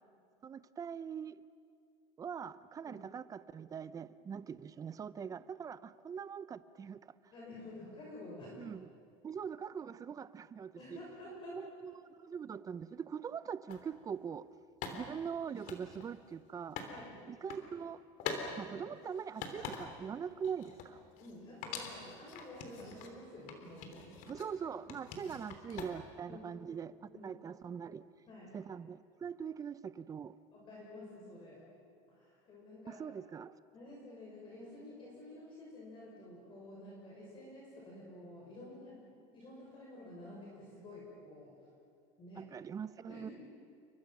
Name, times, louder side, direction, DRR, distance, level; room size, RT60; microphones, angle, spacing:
voice 1, 0.4-1.4 2.2-7.1 8.6-8.9 9.2-11.0 11.5-14.5 14.9-16.8 17.3-18.0 18.6-21.0 24.3-28.1 28.5-30.3 32.9-33.5 42.4-43.3, right 7 dB, 20° right, 0.6 m, -42 dB
voice 2, 7.3-8.6 10.8-11.6 16.8-17.2 18.9-19.0 21.2-24.2 25.1-25.4 26.3-26.4 27.1-27.4 28.3-28.6 30.5-31.6 32.1-33.1 33.7-41.6 42.2-42.6 43.1-43.3, left 1 dB, 30° left, 6.7 m, -50 dB
sound 1, 13.7-13.8 14.8-16.9 17.3-17.7 18.2-18.5 18.9-20.1 20.4-21.4 21.6-23.1 23.5-24.5 24.9-26.2, left 6 dB, 55° left, 3.5 m, -44 dB
30.0 x 24.0 x 6.1 m
supercardioid pair, 140°, 16 cm